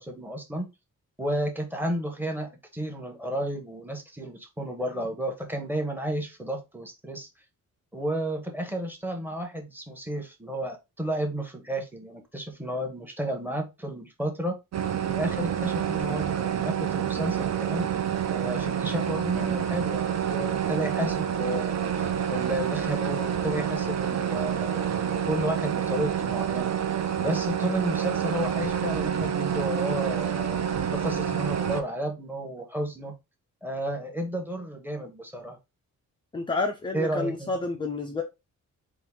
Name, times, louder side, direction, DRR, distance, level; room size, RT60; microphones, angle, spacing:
voice 1, 0.1-0.7 1.2-7.3 7.9-14.6 15.0-17.9 18.3-26.7 27.2-30.6 30.9-33.1 33.6-35.6 36.9-37.5, right 1 dB, 5° right, 0.8 m, -32 dB
sound 1, 14.7-31.8, right 9 dB, 55° right, 0.6 m, -28 dB
voice 2, 36.3-38.2, left 3 dB, 15° left, 0.3 m, -29 dB
4.5 x 2.5 x 3.6 m
wide cardioid pair, 175°, 32 cm